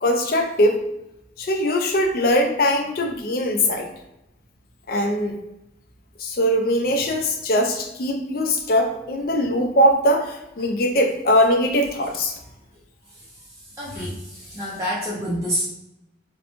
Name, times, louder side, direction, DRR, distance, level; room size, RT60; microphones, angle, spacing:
voice 1, 0.0-0.9 1.4-3.9 4.9-5.4 6.2-12.4 14.0-14.1, equal, 50° left, 3 dB, 0.4 m, -21 dB
voice 2, 13.8-15.6, equal, 15° right, -7 dB, 0.4 m, -27 dB
2.6 x 2.2 x 2.9 m, 0.88 s
head